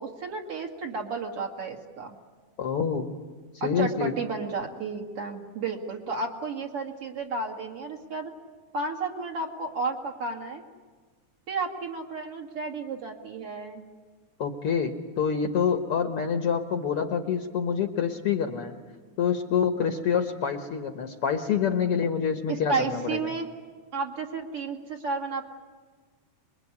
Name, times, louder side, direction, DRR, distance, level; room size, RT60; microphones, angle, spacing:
voice 1, 0.0-2.2 3.6-8.3 8.7-10.6 11.5-13.8 22.5-23.5 23.9-25.4, right 4 dB, 50° right, 2 dB, 3.0 m, -32 dB
voice 2, 2.6-3.1 3.6-4.1 14.4-18.8 19.2-23.3, left 7 dB, 55° left, 6 dB, 2.0 m, -27 dB
26.5 x 22.0 x 9.8 m, 1.5 s
omnidirectional pair, 3.6 m